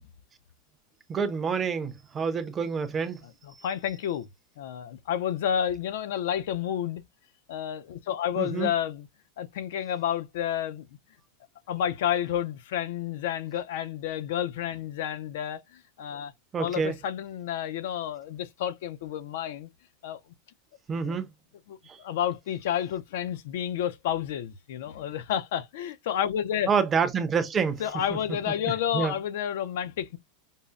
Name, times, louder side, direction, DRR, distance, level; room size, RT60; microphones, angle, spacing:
voice 1, 1.1-3.2 8.4-8.7 16.5-17.0 20.9-21.3 21.9-22.0 26.7-27.8 28.9-29.1, right 6 dB, 15° right, 0.5 m, -27 dB
voice 2, 3.4-4.3 4.6-7.0 7.5-9.1 9.4-10.9 11.7-16.3 16.6-19.7 20.0-20.2 21.7-26.7 27.8-30.2, left 10 dB, 65° left, 0.5 m, -30 dB
5.3 x 2.0 x 2.3 m
supercardioid pair, 175°, 0 cm